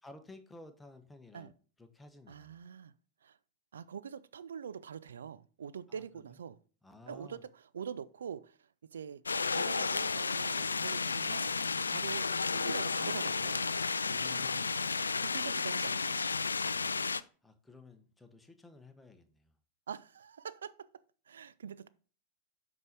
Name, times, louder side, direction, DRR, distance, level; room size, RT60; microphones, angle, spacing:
voice 1, 0.0-1.5 1.8-2.6 5.9-6.0 6.8-7.4 14.0-14.7 17.4-19.5, left 2 dB, 5° left, 1.2 m, -54 dB
voice 2, 2.3-2.9 3.2-3.4 3.7-6.6 7.1-9.2 9.5-11.5 11.9-13.7 15.2-16.2 19.9-20.9 21.3-21.9, right 7 dB, 65° right, 0.5 m, -44 dB
sound 1, 9.3-17.2, left 4 dB, 75° left, 0.3 m, -32 dB
8.2 x 5.4 x 4.6 m
figure-of-eight pair, 90°, 0 cm